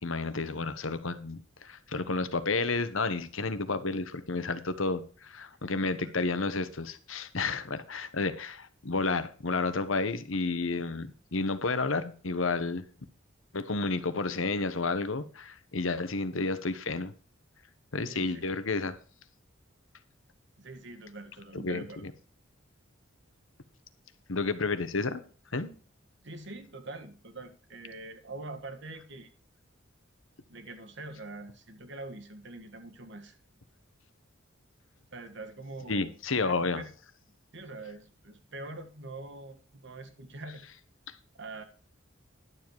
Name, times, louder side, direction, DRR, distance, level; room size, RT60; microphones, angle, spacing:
voice 1, 0.0-12.8 13.5-17.1 17.9-19.0 21.5-22.1 24.3-25.2 25.5-25.7 35.9-36.8, left 3 dB, 75° left, 12 dB, 1.2 m, -31 dB
voice 2, 5.7-6.1 18.0-18.4 20.6-22.1 26.2-29.3 30.5-33.4 35.1-36.1 36.4-36.9 37.5-40.7 41.3-41.6, right 2 dB, 60° right, 9 dB, 1.6 m, -44 dB
11.5 x 7.5 x 4.7 m, 0.39 s
head